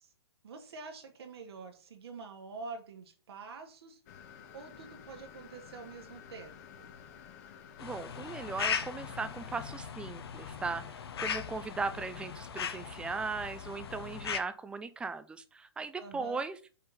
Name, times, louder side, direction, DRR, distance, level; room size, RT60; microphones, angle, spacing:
voice 1, 0.4-4.0 4.5-6.9 16.0-16.4, right 4 dB, 70° right, 3 dB, 1.6 m, -46 dB
sound 1, 4.1-9.8, left 8 dB, 40° left, 0.9 m, -52 dB
sound 2, 7.8-14.4, left 7 dB, 70° left, 1.0 m, -38 dB
voice 2, 7.8-16.6, right 4 dB, 5° right, 13 dB, 0.4 m, -38 dB
5.5 x 3.9 x 5.6 m, 0.38 s
hypercardioid pair, 140°, 14 cm